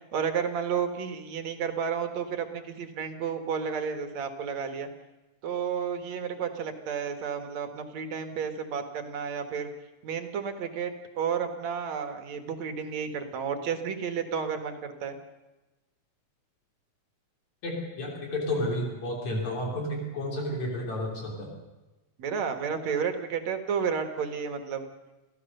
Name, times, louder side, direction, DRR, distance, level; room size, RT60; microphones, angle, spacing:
voice 1, 0.1-4.9 5.4-9.7 10.0-15.2 22.2-24.8, right 6 dB, 65° right, 7 dB, 2.9 m, -31 dB
voice 2, 17.6-21.6, left 1 dB, 65° left, 0 dB, 4.6 m, -31 dB
27.0 x 15.5 x 6.7 m, 1.1 s
omnidirectional pair, 3.5 m